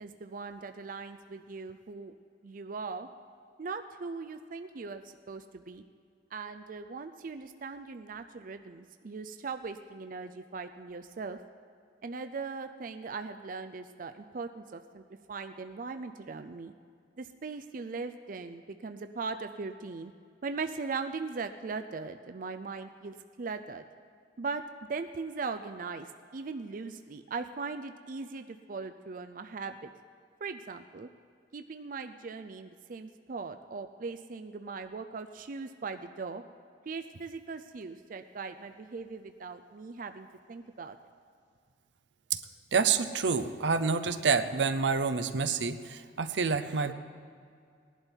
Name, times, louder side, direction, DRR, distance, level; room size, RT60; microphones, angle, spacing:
voice 1, 0.0-2.1 2.4-3.1 3.6-5.8 6.3-11.4 12.0-15.0 15.3-16.7 17.2-20.1 20.4-23.8 24.4-24.6 24.9-26.1 26.3-29.9 30.4-31.1 31.5-36.4 36.9-41.0, right 4 dB, 50° right, 8 dB, 0.5 m, -39 dB
voice 2, 42.7-46.9, right 5 dB, 85° right, 10 dB, 0.7 m, -28 dB
18.0 x 11.5 x 4.5 m, 2.3 s
head